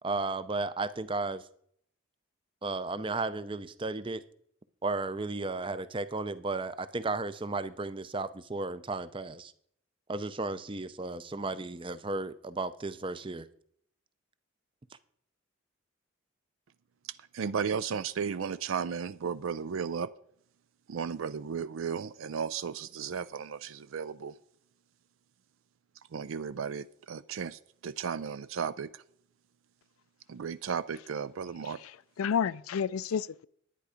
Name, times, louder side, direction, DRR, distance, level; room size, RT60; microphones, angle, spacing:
voice 1, 0.0-1.4 2.6-4.2 4.8-9.5 10.1-13.5, right 3 dB, 25° right, 0.5 m, -34 dB
voice 2, 17.3-20.1 20.9-24.3 26.1-29.0 30.3-31.8, right 6 dB, 75° right, 0.4 m, -34 dB
voice 3, 31.6-33.5, left 7 dB, 90° left, 0.4 m, -31 dB
11.0 x 9.7 x 5.0 m
head